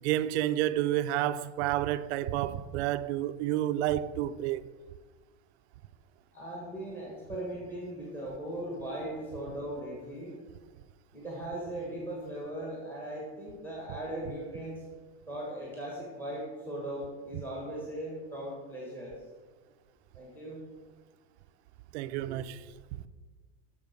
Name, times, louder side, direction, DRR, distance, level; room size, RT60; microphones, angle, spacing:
voice 1, 0.0-4.7 21.9-22.6 22.9-23.0, right 13 dB, 70° right, 0.5 m, -30 dB
voice 2, 6.3-10.4 11.1-14.9 15.3-19.2 20.1-20.6 22.3-22.4, right 1 dB, 5° left, 1.5 m, -38 dB
7.0 x 6.8 x 5.3 m
supercardioid pair, 165°, 35 cm